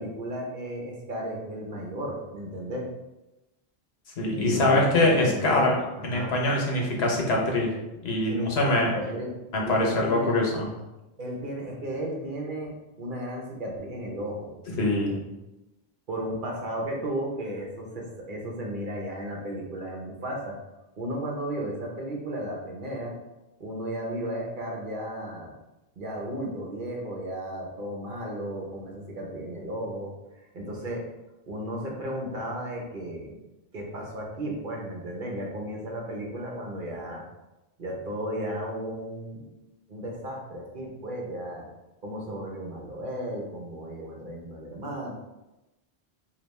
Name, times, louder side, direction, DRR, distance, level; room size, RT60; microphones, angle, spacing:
voice 1, 0.0-2.9 4.3-6.3 8.3-9.3 9.6-10.4 11.2-14.5 16.1-20.5 21.0-23.1 23.6-25.5 26.0-30.1 30.5-31.0 31.5-33.3 33.7-37.2 37.8-39.5 39.9-41.7 42.0-45.1, right 1 dB, 55° right, -1 dB, 1.0 m, -34 dB
voice 2, 4.2-5.7 6.0-7.7 8.0-8.9 9.5-10.7 14.7-15.2, left 2 dB, 80° left, -1 dB, 1.2 m, -23 dB
3.4 x 2.8 x 4.1 m, 0.99 s
omnidirectional pair, 1.0 m